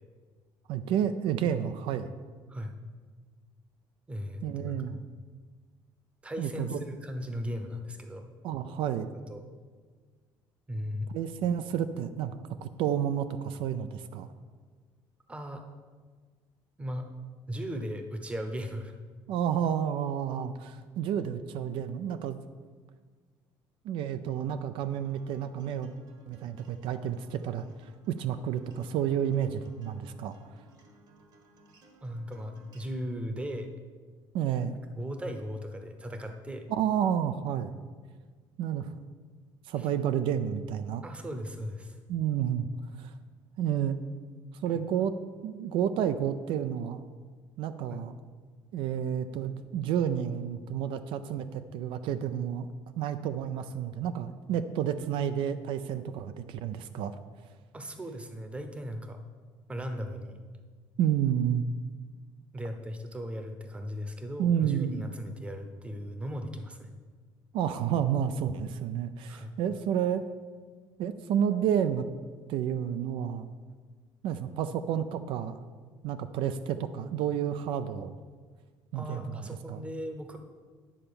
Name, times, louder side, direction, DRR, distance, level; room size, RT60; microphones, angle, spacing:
voice 1, 0.7-2.1 4.4-5.0 6.4-6.8 8.4-9.1 11.1-12.3 12.6-14.3 19.3-22.4 23.8-25.9 26.3-30.3 34.3-34.8 36.7-37.7 38.6-38.9 39.6-41.0 42.1-42.7 42.9-43.1 43.6-44.0 44.5-45.1 45.4-47.0 47.6-48.2 48.7-52.7 53.0-57.2 61.0-61.7 64.4-65.1 67.5-70.3 71.0-72.1 72.5-73.5 74.2-75.6 76.0-78.1 78.9-79.8, right 9 dB, 70° right, 11 dB, 0.4 m, -30 dB
voice 2, 4.1-4.8 6.2-8.3 9.3-9.4 10.7-11.1 15.3-15.6 16.8-17.1 17.5-18.9 32.0-33.7 35.0-36.7 39.8-39.9 41.0-42.0 44.7-44.8 47.9-48.0 57.7-59.2 59.7-60.4 62.5-66.9 69.3-69.6 78.9-80.4, equal, 15° right, 6 dB, 0.8 m, -37 dB
Acoustic guitar, 24.8-32.8, right 2 dB, 50° right, 1.3 m, -60 dB
9.9 x 4.4 x 6.9 m, 1.5 s
cardioid pair, 145°, 9 cm